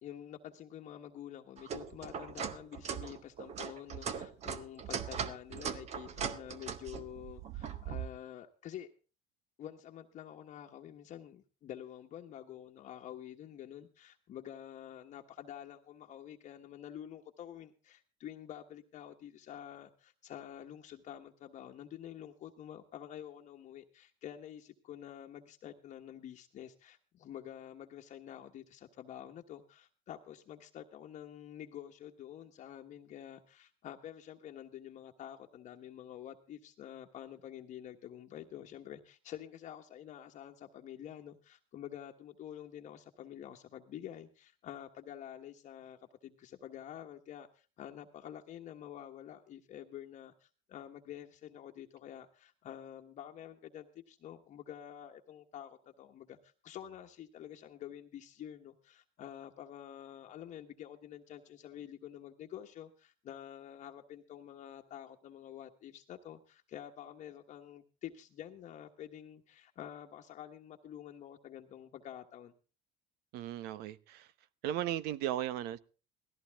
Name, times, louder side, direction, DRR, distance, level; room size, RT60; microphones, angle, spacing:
voice 1, 0.0-8.9 9.6-72.5, left 10 dB, 40° left, 1.3 m, -48 dB
sound 1, 1.6-8.1, right 7 dB, 40° right, 1.4 m, -40 dB
voice 2, 73.3-74.3 74.6-75.8, right 12 dB, 65° right, 1.0 m, -36 dB
17.5 x 14.0 x 3.6 m
cardioid pair, 145°, 18 cm